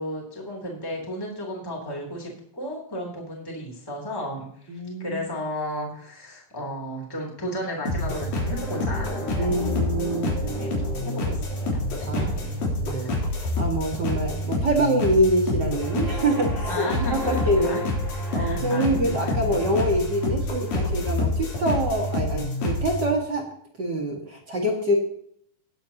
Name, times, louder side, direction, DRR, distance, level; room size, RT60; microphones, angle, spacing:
voice 1, 0.0-9.7 10.1-12.5 12.9-13.2 16.7-17.8 18.3-19.4, equal, 5° left, -1 dB, 3.0 m, -34 dB
voice 2, 4.7-5.2 9.4-10.4 12.1-12.3 12.7-13.2 13.6-16.8 17.1-17.8 18.3-23.4 23.8-25.0, right 1 dB, 40° right, 0 dB, 1.8 m, -25 dB
sound 1, 7.9-23.1, left 1 dB, 80° left, 5.2 m, -27 dB
20.0 x 8.7 x 2.9 m, 0.65 s
omnidirectional pair, 4.1 m